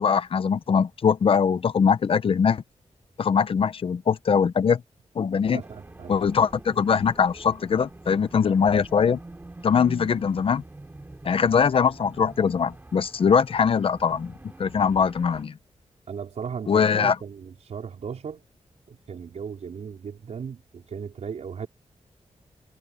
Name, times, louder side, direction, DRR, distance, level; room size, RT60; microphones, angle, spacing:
voice 1, 0.0-2.6 3.2-4.8 5.1-5.6 6.1-9.2 9.6-10.6 11.2-14.3 14.6-15.6 16.7-17.2, left 6 dB, 55° left, 0.7 m, -22 dB
voice 2, 5.5-6.2 16.1-18.4 18.9-21.7, right 6 dB, 75° right, 4.7 m, -36 dB
sound 1, 5.6-15.4, right 2 dB, 15° right, 4.7 m, -44 dB
wide cardioid pair, 175°, 11 cm